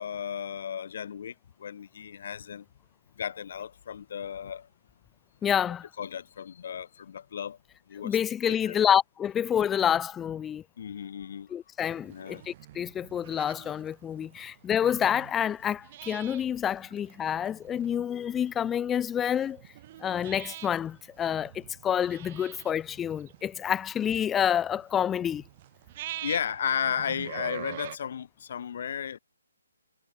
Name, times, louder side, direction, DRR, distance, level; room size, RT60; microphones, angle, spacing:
voice 1, 0.0-2.6 3.2-4.7 6.0-7.6 7.9-8.2 8.6-8.8 10.8-11.5 12.1-12.4 26.2-29.2, left 8 dB, 40° left, 6.0 m, -34 dB
voice 2, 5.4-5.9 8.0-10.6 11.5-19.6 20.0-25.4, left 9 dB, 10° left, 0.3 m, -28 dB
sound 1, 11.8-28.0, right 14 dB, 25° right, 5.8 m, -46 dB
hypercardioid pair, 170°, 0 cm